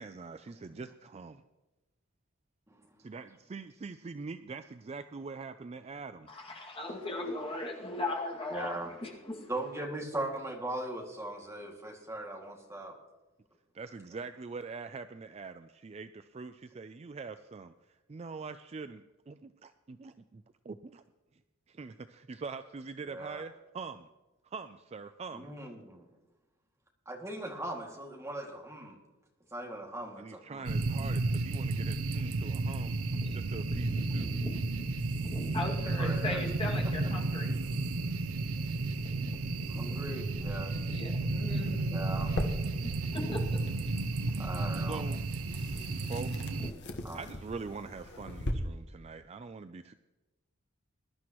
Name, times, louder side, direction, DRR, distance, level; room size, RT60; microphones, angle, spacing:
voice 1, 0.0-1.4 3.0-6.3 13.7-21.0 21.7-24.1 24.5-25.5 30.2-32.9 33.3-34.4 44.8-45.2 46.1-46.6 47.1-49.9, right 4 dB, 30° right, 10 dB, 0.4 m, -43 dB
voice 2, 6.3-9.5 33.1-37.5 39.1-39.4 39.6-39.9 40.7-42.1 43.0-43.9 44.2-44.3 46.6-46.7, left 2 dB, 25° left, -1 dB, 2.2 m, -39 dB
voice 3, 8.5-8.9 9.5-12.9 23.1-23.4 25.3-26.1 27.1-29.0 29.5-30.7 35.7-36.4 39.7-40.7 41.9-42.5 44.4-45.0 47.0-47.2, right 1 dB, 15° right, -1 dB, 2.3 m, -39 dB
sound 1, 30.7-46.7, right 3 dB, 90° right, 0.6 m, -32 dB
sound 2, 42.1-48.5, left 1 dB, 55° left, 1.2 m, -41 dB
21.0 x 11.5 x 3.0 m, 1.1 s
head